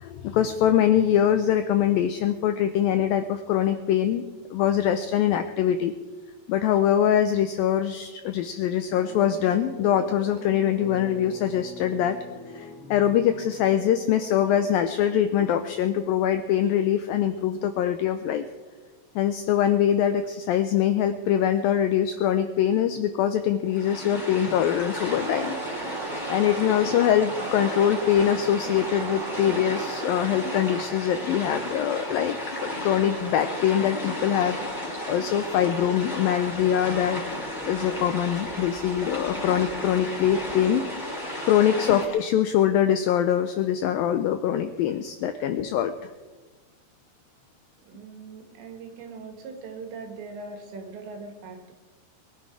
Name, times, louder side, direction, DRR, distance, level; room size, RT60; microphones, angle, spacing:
voice 1, 0.0-5.9 6.5-12.2 12.5-18.5 19.2-25.6 26.3-32.4 32.6-37.2 37.7-40.9 41.5-45.9, left 10 dB, 85° left, 9 dB, 2.0 m, -23 dB
sound 1, 8.9-15.3, right 2 dB, 25° right, 2.3 m, -42 dB
sound 2, 23.7-42.1, left 1 dB, 5° left, 4.5 m, -33 dB
sound 3, 25.1-30.8, right 8 dB, 70° right, 2.5 m, -38 dB
voice 2, 47.8-51.7, right 4 dB, 85° right, 4 dB, 4.3 m, -41 dB
22.5 x 11.5 x 4.8 m, 1.3 s
omnidirectional pair, 4.9 m